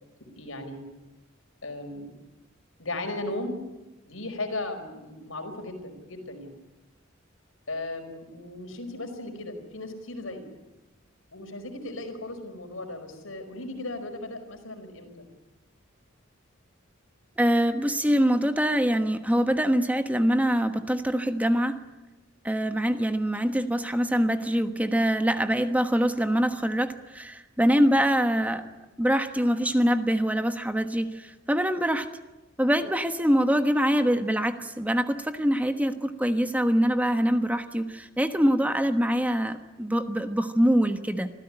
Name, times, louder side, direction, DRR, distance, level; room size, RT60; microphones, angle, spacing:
voice 1, 0.2-0.8 1.6-2.1 2.8-3.6 4.1-6.5 7.7-10.4 11.3-15.1, left 2 dB, 85° left, 5 dB, 5.0 m, -36 dB
voice 2, 17.4-21.8 22.4-28.6 29.0-32.1 32.6-41.3, equal, 10° right, 8 dB, 1.2 m, -24 dB
26.0 x 15.5 x 9.9 m, 1.1 s
head